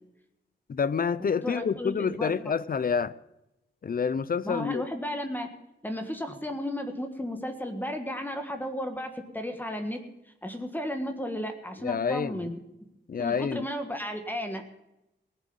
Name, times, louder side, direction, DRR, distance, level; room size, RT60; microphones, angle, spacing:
voice 1, 0.7-3.1 3.8-4.9 11.8-12.5 13.1-13.7, left 6 dB, 50° left, 0.6 m, -28 dB
voice 2, 1.2-2.3 4.4-5.5 5.8-10.0 10.4-12.6 13.2-14.6, equal, 10° left, 1.5 m, -34 dB
19.0 x 7.3 x 7.1 m
wide cardioid pair, 150°, 19 cm